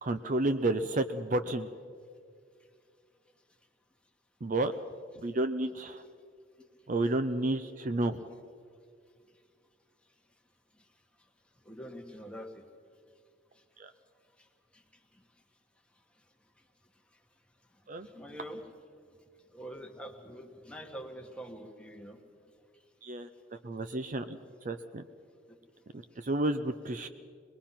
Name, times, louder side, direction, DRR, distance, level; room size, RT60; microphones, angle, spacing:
voice 1, 0.0-1.7 4.4-4.7 5.2-6.0 6.9-8.2 13.8-13.9 17.9-18.1 23.0-23.3 23.6-24.4 24.6-25.0 25.9-27.1, right 2 dB, 40° right, 9 dB, 0.6 m, -31 dB
voice 2, 11.6-12.6 14.7-14.8 18.0-18.6 19.5-22.2, equal, 5° left, 2 dB, 1.6 m, -45 dB
23.5 x 20.5 x 5.8 m, 2.2 s
head